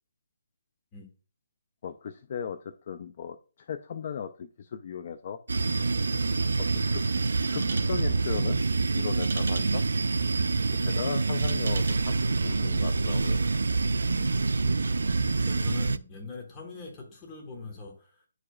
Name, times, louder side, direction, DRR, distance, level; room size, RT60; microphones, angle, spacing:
voice 1, 1.8-3.4 3.7-5.4 6.5-7.0 7.5-8.6 8.9-9.8 10.8-13.4, left 7 dB, 35° left, 0.3 m, -37 dB
sound 1, 5.5-16.0, right 3 dB, 85° right, 0.4 m, -26 dB
sound 2, 7.4-13.4, right 4 dB, 60° right, 1.1 m, -44 dB
voice 2, 14.0-18.2, left 4 dB, 15° left, 1.3 m, -43 dB
9.6 x 4.8 x 2.3 m
hypercardioid pair, 170°, 0 cm